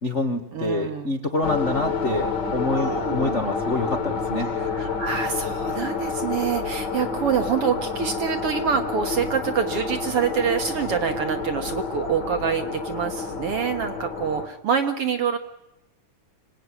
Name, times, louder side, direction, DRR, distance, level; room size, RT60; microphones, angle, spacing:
voice 1, 0.0-4.5, left 2 dB, 70° left, 4 dB, 0.6 m, -26 dB
voice 2, 0.5-1.1 2.7-3.4 4.7-15.4, right 7 dB, 55° right, 7 dB, 1.7 m, -26 dB
sound 1, 1.4-14.5, left 4 dB, 40° left, 1.9 m, -29 dB
25.5 x 18.5 x 9.8 m, 0.94 s
omnidirectional pair, 3.9 m